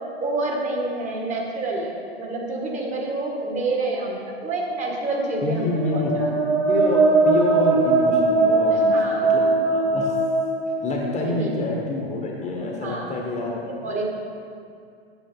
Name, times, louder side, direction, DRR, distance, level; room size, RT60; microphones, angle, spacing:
voice 1, 0.0-6.3 8.7-9.4 11.2-11.5 12.6-13.2 13.8-14.0, right 2 dB, 25° right, -1 dB, 1.8 m, -28 dB
voice 2, 5.4-6.2 6.7-10.2 10.8-13.6, left 2 dB, 20° left, 0 dB, 1.3 m, -27 dB
sound 1, 5.7-11.5, right 3 dB, 40° right, 1.6 m, -20 dB
8.3 x 8.0 x 5.5 m, 2.3 s
hypercardioid pair, 115°, 31 cm